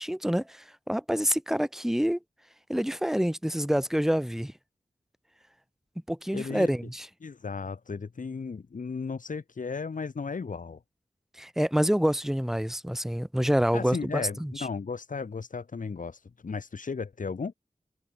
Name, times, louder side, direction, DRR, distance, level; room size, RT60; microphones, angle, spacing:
voice 1, 0.0-2.2 2.7-4.5 6.1-7.1 11.4-14.7, equal, 5° right, 1.2 m, -27 dB
voice 2, 6.3-6.7 7.2-10.8 13.7-17.5, left 5 dB, 65° left, 0.9 m, -35 dB
wide cardioid pair, 50°, 14 cm